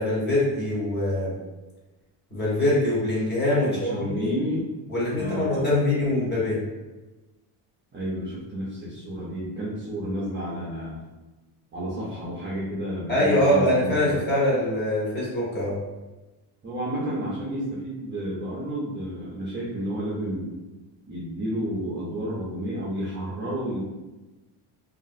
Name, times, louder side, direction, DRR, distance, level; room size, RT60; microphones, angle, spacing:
voice 1, 0.0-1.3 2.3-4.3 4.9-6.6 13.1-15.7, left 1 dB, 20° left, -7 dB, 0.9 m, -23 dB
voice 2, 3.6-4.7 5.1-5.7 7.9-11.0 11.7-14.2 16.6-20.5 21.0-23.8, equal, 25° right, -7 dB, 0.4 m, -31 dB
2.9 x 2.4 x 2.6 m, 1.1 s
cardioid pair, 145°, 49 cm